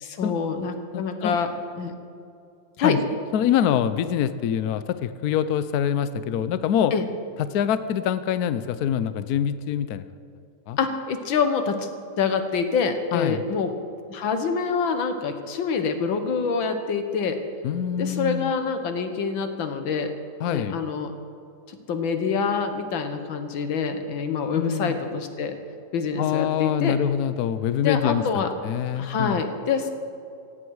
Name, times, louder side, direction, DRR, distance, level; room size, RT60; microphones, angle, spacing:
voice 1, 0.0-1.9 2.8-3.0 6.9-7.1 10.8-11.9 12.2-13.7 14.1-17.4 18.0-20.1 20.5-21.1 21.7-25.6 25.9-26.9 27.8-28.5 29.0-29.9, left 5 dB, 90° left, 7 dB, 2.0 m, -26 dB
voice 2, 0.9-1.3 2.8-3.0 3.3-6.9 7.5-10.0 10.7-10.8 13.1-13.4 17.6-18.5 20.4-20.8 24.5-25.0 26.2-29.4, left 9 dB, 65° left, 12 dB, 1.0 m, -25 dB
17.5 x 16.0 x 4.8 m, 2.6 s
omnidirectional pair, 2.1 m